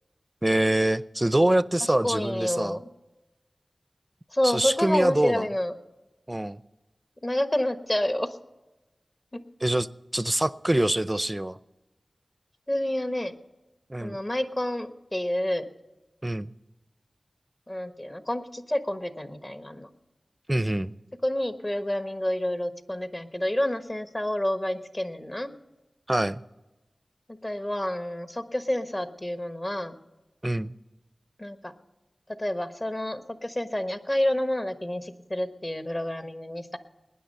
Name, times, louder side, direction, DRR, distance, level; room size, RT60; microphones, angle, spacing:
voice 1, 0.4-2.8 4.4-5.5 6.3-6.6 9.6-11.6 13.9-14.2 16.2-16.5 20.5-20.9 26.1-26.4 30.4-30.7, right 1 dB, 25° right, 16 dB, 0.6 m, -25 dB
voice 2, 1.8-2.8 4.3-5.7 7.2-8.3 12.7-13.3 14.0-15.6 17.7-19.9 21.2-25.5 27.4-30.0 31.4-31.7 32.4-36.8, left 1 dB, 30° left, 9 dB, 1.3 m, -29 dB
19.5 x 9.9 x 5.5 m, 1.1 s
cardioid pair, 45°, 0 cm